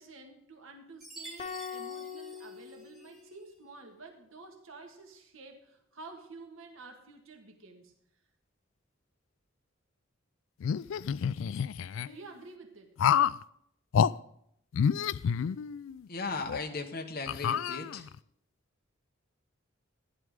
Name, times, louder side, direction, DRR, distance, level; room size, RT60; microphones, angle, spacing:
voice 1, 0.0-7.9 12.0-13.0, right 3 dB, 85° right, 4 dB, 1.7 m, -50 dB
Chime, 1.0-3.3, right 2 dB, ahead, 1.7 m, -49 dB
sound 1, 1.4-3.7, left 6 dB, 35° left, 0.8 m, -42 dB
sound 2, 10.6-12.1 13.0-13.4 13.9-14.1 14.7-16.0 16.5-16.6 17.3-18.2, left 7 dB, 75° left, 0.3 m, -28 dB
voice 2, 16.1-18.1, left 4 dB, 50° left, 3 dB, 1.2 m, -37 dB
14.0 x 10.5 x 3.6 m, 0.72 s
head